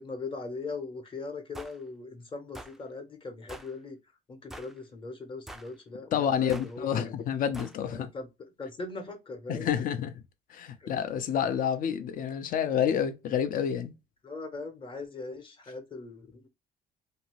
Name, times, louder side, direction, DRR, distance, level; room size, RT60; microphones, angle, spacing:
voice 1, 0.0-4.0 4.3-7.1 7.8-9.7 10.8-10.9 14.2-16.5, left 3 dB, 30° left, 0.8 m, -40 dB
sound 1, 1.5-1.8 2.5-2.8 3.5-3.7 4.5-4.8 5.5-5.7 6.5-6.7 7.5-7.8, right 1 dB, ahead, 0.3 m, -44 dB
voice 2, 6.1-8.1 9.5-10.2 10.5-13.9, left 8 dB, 55° left, 0.6 m, -29 dB
2.6 x 2.6 x 3.0 m
cardioid pair, 110°, 17 cm